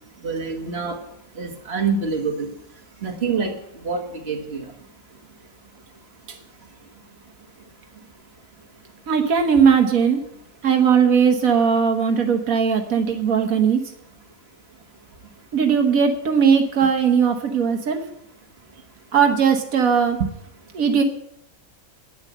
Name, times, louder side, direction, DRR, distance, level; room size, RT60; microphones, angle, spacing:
voice 1, 0.2-1.0 1.4-2.3 3.0-3.5 3.8-4.6, right 5 dB, 50° right, 2 dB, 2.0 m, -26 dB
voice 2, 9.1-10.2 10.6-13.8 15.5-18.0 19.1-20.3 20.7-21.0, right 6 dB, 80° right, 5 dB, 1.5 m, -18 dB
10.5 x 9.6 x 7.4 m, 0.76 s
omnidirectional pair, 1.4 m